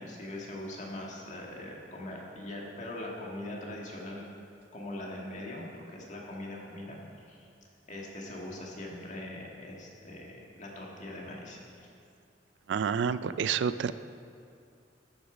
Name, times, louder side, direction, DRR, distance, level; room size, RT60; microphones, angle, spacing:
voice 1, 0.0-4.3 4.7-7.0 7.3-7.5 7.9-11.9, left 1 dB, 45° left, -2 dB, 1.8 m, -41 dB
voice 2, 12.7-13.9, right 7 dB, 75° right, 15 dB, 0.3 m, -29 dB
11.5 x 8.1 x 5.0 m, 2.4 s
head